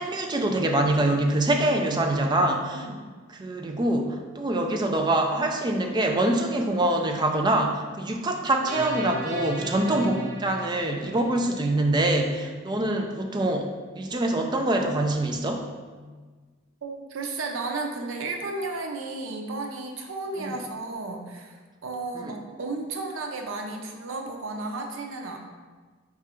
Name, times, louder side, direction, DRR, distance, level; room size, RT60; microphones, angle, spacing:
voice 1, 0.0-2.9 3.3-15.7 20.4-20.6 22.1-22.3, right 1 dB, 20° right, 3 dB, 0.4 m, -25 dB
voice 2, 2.7-3.1 16.8-25.4, right 3 dB, 85° right, 3 dB, 0.6 m, -33 dB
sound 1, 8.7-12.0, left 1 dB, 40° right, 1.0 m, -35 dB
4.8 x 2.4 x 4.3 m, 1.4 s
head